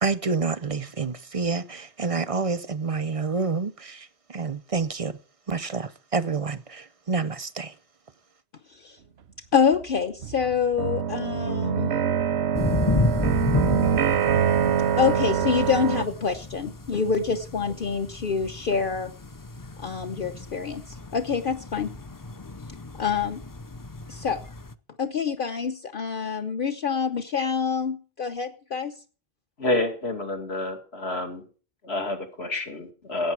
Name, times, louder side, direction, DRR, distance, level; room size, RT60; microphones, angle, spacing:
voice 1, 0.0-5.2 5.5-7.7, right 4 dB, 40° right, 0.6 m, -28 dB
voice 2, 9.5-11.9 15.0-19.1 19.8-21.9 23.0-23.4 24.1-24.4 25.0-28.9, left 6 dB, 55° left, 1.1 m, -26 dB
sound 1, 9.7-9.8 10.2-16.0, right 8 dB, 80° right, 1.0 m, -24 dB
sound 2, 12.5-24.7, left 2 dB, 25° left, 0.5 m, -31 dB
voice 3, 29.6-31.4 31.8-33.3, left 2 dB, 75° left, 2.7 m, -28 dB
17.0 x 9.1 x 4.6 m
omnidirectional pair, 1.1 m